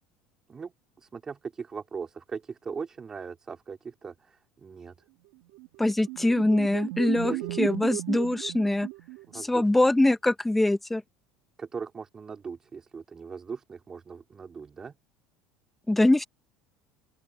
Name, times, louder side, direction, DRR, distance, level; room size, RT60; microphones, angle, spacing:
voice 1, 1.0-4.9 7.3-7.6 9.3-9.6 11.6-14.9, right 5 dB, 25° right, 4.5 m, -39 dB
sound 1, 5.5-9.6, right 22 dB, 75° right, 3.2 m, -35 dB
voice 2, 5.8-8.9 9.3-11.0 15.9-16.2, left 1 dB, 5° left, 1.1 m, -23 dB
open air
supercardioid pair, 110°, 2 cm